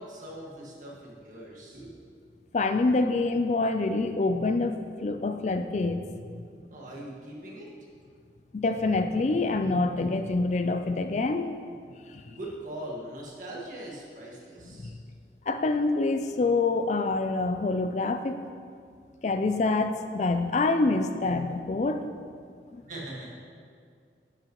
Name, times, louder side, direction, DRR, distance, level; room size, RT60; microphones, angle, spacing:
voice 1, 0.0-2.0 6.7-7.7 12.3-14.9 22.9-23.3, right 1 dB, 45° right, -4 dB, 1.8 m, -41 dB
voice 2, 2.5-6.0 8.5-11.5 12.1-12.2 14.7-14.8 15.5-18.4 19.2-22.1 22.7-22.8, left 3 dB, 40° left, 8 dB, 0.4 m, -26 dB
10.5 x 8.9 x 3.0 m, 2.2 s
head